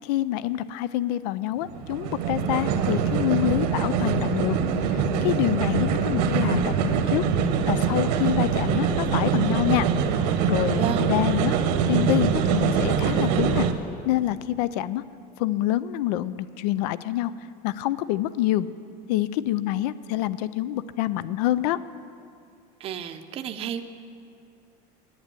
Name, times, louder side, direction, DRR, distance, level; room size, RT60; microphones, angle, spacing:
voice 1, 0.0-4.6 4.9-7.2 7.7-9.9 10.5-11.5 11.9-13.7 14.0-15.0 15.4-17.3 17.6-18.7 19.1-21.8, left 14 dB, 75° left, 16 dB, 0.5 m, -26 dB
sound 1, 1.6-13.7, right 6 dB, 80° right, 1.1 m, -24 dB
voice 2, 10.7-11.2 22.8-23.8, right 9 dB, 30° right, 6 dB, 0.6 m, -31 dB
11.0 x 9.4 x 8.9 m, 2.4 s
cardioid pair, 160°, 21 cm